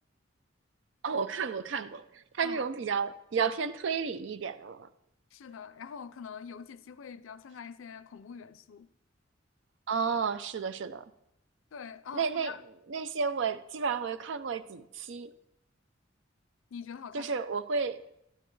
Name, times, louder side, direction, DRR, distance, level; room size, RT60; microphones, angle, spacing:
voice 1, 1.0-4.9 9.9-11.1 12.1-12.5 12.9-15.3 17.1-18.0, right 5 dB, 65° right, 0.5 m, -32 dB
voice 2, 5.3-8.9 11.7-12.6 16.7-17.3, left 6 dB, 90° left, 0.5 m, -44 dB
12.0 x 10.0 x 3.2 m
head